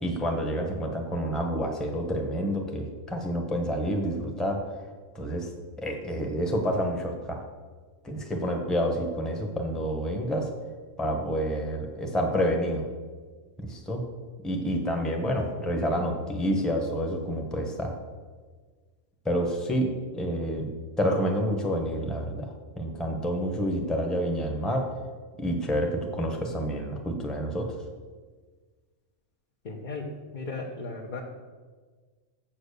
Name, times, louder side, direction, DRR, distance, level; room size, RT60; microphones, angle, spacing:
voice 1, 0.0-4.6 5.1-5.5 5.8-7.4 8.0-10.5 11.0-12.8 13.6-14.0 14.4-18.0 19.2-20.7 21.0-22.5 22.8-24.9 25.4-27.7, equal, ahead, 2 dB, 1.1 m, -28 dB
voice 2, 29.6-31.2, left 3 dB, 40° left, -2 dB, 1.0 m, -36 dB
7.3 x 7.3 x 6.7 m, 1.4 s
omnidirectional pair, 1.3 m